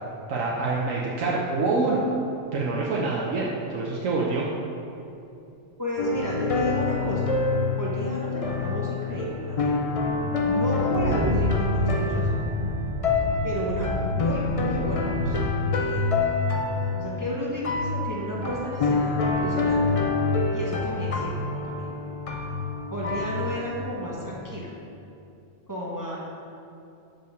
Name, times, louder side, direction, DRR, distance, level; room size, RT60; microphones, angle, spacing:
voice 1, 0.3-2.0 2.5-4.5, right 3 dB, 85° right, -4 dB, 1.2 m, -26 dB
voice 2, 5.8-7.2 7.8-9.8 10.5-12.4 13.4-15.4 15.7-16.0 16.9-19.8 20.5-21.9 22.9-24.7 25.7-26.2, equal, 15° right, -5 dB, 1.0 m, -32 dB
sound 1, 6.0-24.5, left 3 dB, 40° left, 0.5 m, -27 dB
sound 2, 10.9-15.5, right 1 dB, 50° right, 1.0 m, -30 dB
5.9 x 5.6 x 6.4 m, 2.7 s
omnidirectional pair, 1.3 m